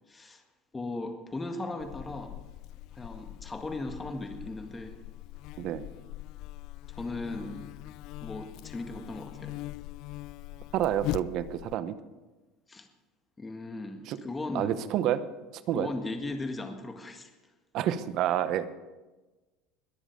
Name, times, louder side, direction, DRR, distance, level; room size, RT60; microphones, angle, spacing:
voice 1, 0.1-0.4 0.7-2.3 2.9-4.9 6.9-7.7 8.2-9.6 12.7-12.9 13.4-14.8 15.7-17.3, left 2 dB, 20° left, 6 dB, 1.8 m, -37 dB
Buzz, 1.8-11.8, left 16 dB, 60° left, 0.3 m, -41 dB
voice 2, 10.7-12.0 14.1-14.2 14.5-15.2 15.7-15.9 17.7-18.7, right 11 dB, 55° right, 14 dB, 0.9 m, -28 dB
21.5 x 7.3 x 5.2 m, 1.2 s
supercardioid pair, 90°, 0 cm